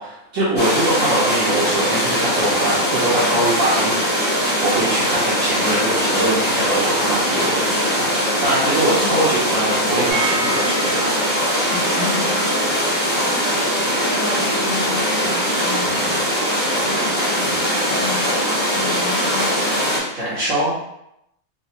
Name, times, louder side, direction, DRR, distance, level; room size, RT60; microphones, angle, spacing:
voice 1, 0.0-8.1 8.4-11.1 20.1-20.8, right 1 dB, 60° right, -8 dB, 1.2 m, -23 dB
sound 1, 0.6-20.0, equal, 10° left, 0.7 m, -21 dB
voice 2, 8.9-9.3 11.7-12.4 12.7-13.3 13.8-16.2 16.8-18.4 18.7-19.5, left 3 dB, 55° left, -11 dB, 1.7 m, -32 dB
sound 2, 10.1-15.9 16.1-16.2 16.5-16.6, right 3 dB, 85° right, 1.6 m, -33 dB
3.7 x 2.4 x 3.0 m, 0.82 s
omnidirectional pair, 1.5 m